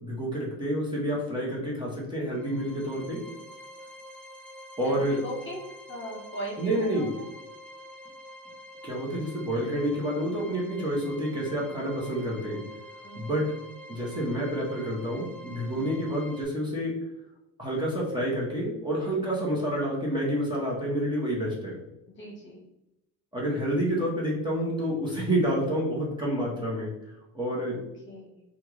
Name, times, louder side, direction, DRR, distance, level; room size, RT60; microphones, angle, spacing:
voice 1, 0.0-3.2 4.8-5.2 6.6-7.1 8.8-12.6 13.2-13.5 13.9-16.9 17.6-21.8 23.3-26.9 27.3-27.8, equal, 10° right, -5 dB, 1.2 m, -29 dB
sound 1, 2.3-16.4, equal, 5° left, 0.3 m, -47 dB
voice 2, 5.2-5.6 5.9-7.3 13.0-13.4 15.7-16.0 22.2-22.6 27.7-28.4, right 1 dB, 30° left, -2 dB, 1.2 m, -40 dB
3.3 x 2.5 x 3.1 m, 0.91 s
supercardioid pair, 85°, 38 cm